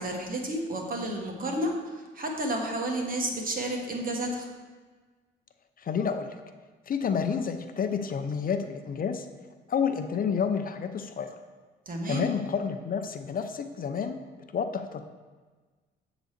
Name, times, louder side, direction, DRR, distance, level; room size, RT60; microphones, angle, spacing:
voice 1, 0.0-4.5 11.9-12.3, right 1 dB, 45° right, 1 dB, 1.6 m, -31 dB
voice 2, 5.8-6.3 6.9-9.3 9.7-11.3 12.1-14.2 14.5-15.0, left 6 dB, 45° left, 7 dB, 0.6 m, -29 dB
8.0 x 4.0 x 6.5 m, 1.4 s
cardioid pair, 90°, 20 cm